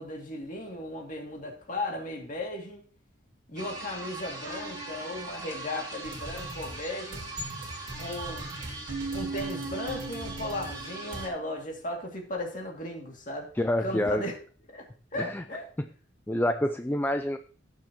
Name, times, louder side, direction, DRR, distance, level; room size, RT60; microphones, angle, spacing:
voice 1, 0.0-2.8 3.5-7.3 8.0-8.5 9.1-13.5 13.8-14.3 14.7-14.9 15.1-15.7, left 1 dB, 45° left, 1 dB, 2.4 m, -36 dB
sound 1, 3.6-11.3, right 2 dB, 20° right, 2.3 m, -41 dB
sound 2, 6.0-11.3, right 1 dB, 70° right, 2.0 m, -42 dB
Keyboard (musical), 8.9-11.5, right 3 dB, 85° right, 1.2 m, -38 dB
voice 2, 13.6-14.2 15.2-15.4 16.3-17.4, left 1 dB, 10° left, 8 dB, 0.4 m, -27 dB
17.0 x 6.5 x 2.9 m, 0.40 s
head